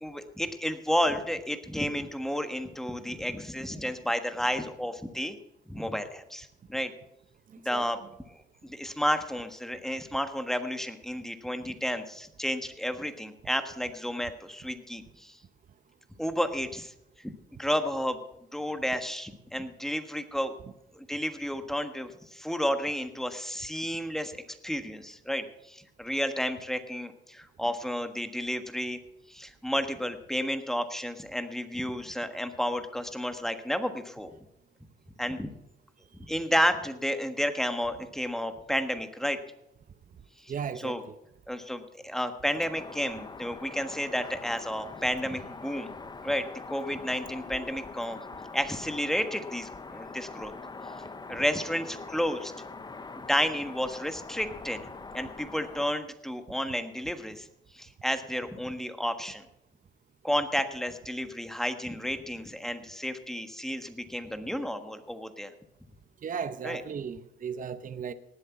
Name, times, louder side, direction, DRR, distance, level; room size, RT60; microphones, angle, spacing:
voice 1, 0.0-5.4 5.7-6.9 7.6-8.0 8.6-15.4 16.2-16.9 17.2-18.2 18.5-20.5 20.9-24.4 24.6-29.0 29.3-34.3 35.2-35.5 36.2-39.4 40.4-40.5 40.8-41.0 41.5-45.9 46.2-48.2 48.5-50.5 51.3-52.5 53.3-54.9 55.1-57.5 57.7-59.4 60.2-65.5 66.6-66.8, equal, ahead, 8 dB, 1.4 m, -31 dB
voice 2, 7.5-7.9 40.5-41.2 66.2-68.1, right 7 dB, 40° right, 12 dB, 0.8 m, -36 dB
sound 1, 42.5-55.9, left 4 dB, 20° left, 0.8 m, -43 dB
18.5 x 8.0 x 6.0 m, 0.83 s
cardioid pair, 90°, 20 cm